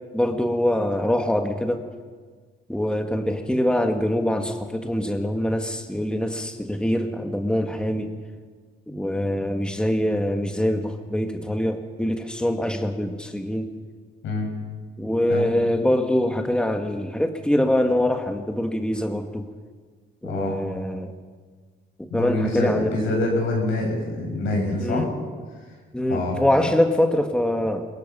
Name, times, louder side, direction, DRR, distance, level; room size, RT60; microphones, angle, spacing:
voice 1, 0.1-1.8 2.7-8.1 8.9-13.7 15.0-19.5 20.2-21.1 22.1-22.9 24.8-25.1 25.9-27.9, left 1 dB, 5° left, 4 dB, 1.7 m, -24 dB
voice 2, 14.2-14.6 15.3-15.5 20.2-20.6 22.1-25.1 26.1-26.4, left 2 dB, 85° left, 0 dB, 7.2 m, -25 dB
22.5 x 21.0 x 5.6 m, 1.5 s
cardioid pair, 90°, 20 cm